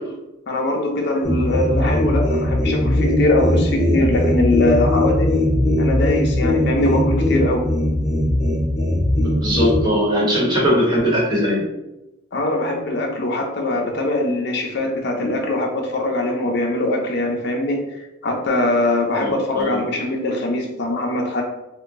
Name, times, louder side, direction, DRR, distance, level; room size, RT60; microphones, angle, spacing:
voice 1, 0.5-5.3 5.8-7.7 12.3-17.8 18.2-21.4, left 1 dB, 60° left, 1 dB, 0.6 m, -21 dB
sound 1, 1.2-9.8, left 1 dB, 20° left, 1.1 m, -20 dB
voice 2, 9.4-11.6 19.2-19.8, equal, 20° right, -6 dB, 1.1 m, -19 dB
2.8 x 2.2 x 3.6 m, 0.95 s
head